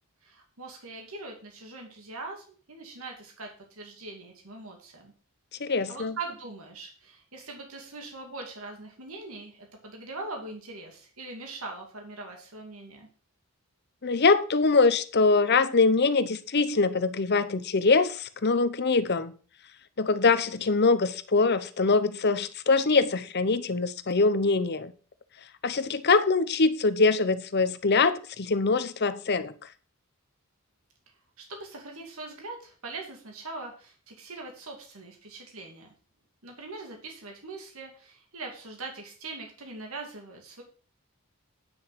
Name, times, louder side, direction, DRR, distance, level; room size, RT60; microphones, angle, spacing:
voice 1, 0.2-5.1 5.9-13.1 31.4-35.9 36.4-40.6, right 3 dB, 75° right, 2.5 m, -41 dB
voice 2, 5.6-6.2 14.0-19.3 20.0-24.9 25.6-29.5, left 4 dB, 50° left, 0.8 m, -23 dB
9.8 x 6.3 x 5.9 m
head